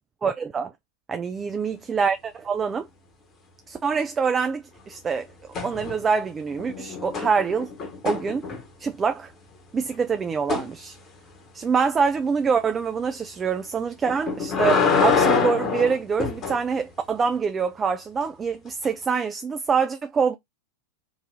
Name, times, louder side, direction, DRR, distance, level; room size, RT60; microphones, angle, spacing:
voice 1, 0.2-0.7 1.1-2.9 3.7-5.3 5.6-7.7 8.0-8.4 8.8-9.3 9.7-11.0 11.5-20.3, right 5 dB, 20° right, 0.4 m, -25 dB
sound 1, 5.5-6.2 6.5-8.9 10.5-10.7 14.1-16.6 18.8-18.9, left 5 dB, 30° left, 1.5 m, -25 dB
4.6 x 2.6 x 3.8 m
figure-of-eight pair, 90°, 0 cm